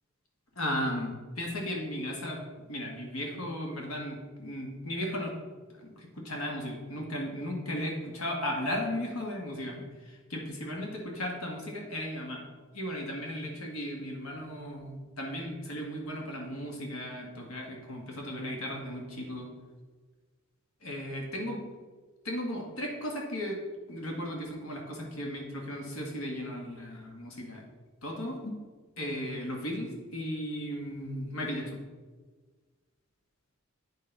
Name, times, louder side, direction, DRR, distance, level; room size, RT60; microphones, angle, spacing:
voice 1, 0.6-2.4 2.7-5.3 5.8-12.4 12.7-19.5 20.8-21.6 22.2-23.6 23.9-27.6 28.0-28.6 29.0-31.8, equal, 80° left, 0 dB, 1.9 m, -36 dB
8.5 x 5.4 x 5.4 m, 1.4 s
head